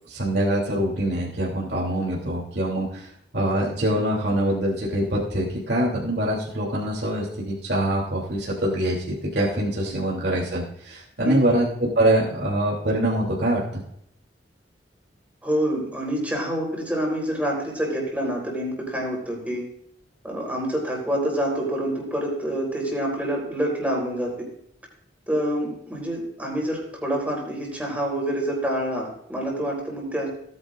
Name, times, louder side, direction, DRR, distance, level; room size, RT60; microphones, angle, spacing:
voice 1, 0.1-3.1 3.3-13.8, right 1 dB, 65° right, -4 dB, 3.1 m, -24 dB
voice 2, 11.2-11.6 15.4-19.6 20.2-24.3 25.3-30.3, equal, 10° right, -1 dB, 4.0 m, -27 dB
17.5 x 9.7 x 2.6 m, 0.70 s
head